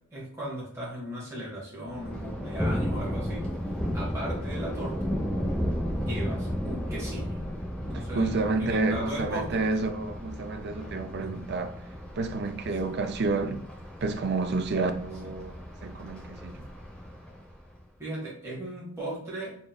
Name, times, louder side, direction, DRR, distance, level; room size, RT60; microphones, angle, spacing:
voice 1, 0.1-3.5 3.9-5.1 5.9-7.4 7.8-9.6 11.0-11.4 18.0-19.6, right 1 dB, 15° right, 1.6 m, -37 dB
Thunder, 1.9-17.8, equal, 5° left, 0.9 m, -34 dB
voice 2, 7.9-11.7 12.2-13.6 14.0-16.6, right 3 dB, 50° right, 0.5 m, -30 dB
4.2 x 3.8 x 2.3 m
head